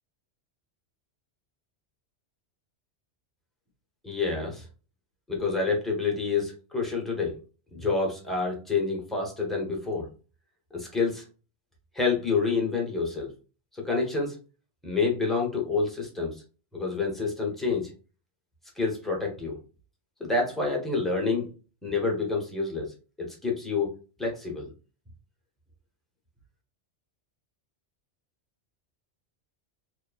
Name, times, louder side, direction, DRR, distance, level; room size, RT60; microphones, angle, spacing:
voice 1, 4.0-4.6 5.3-7.3 7.7-10.1 10.7-11.2 11.9-13.3 13.8-14.4 14.8-16.3 16.7-17.9 18.8-19.6 20.2-21.5 21.8-22.9 23.2-23.9 24.2-24.7, left 4 dB, ahead, -2 dB, 0.6 m, -28 dB
3.1 x 2.1 x 2.3 m, 0.35 s
omnidirectional pair, 1.2 m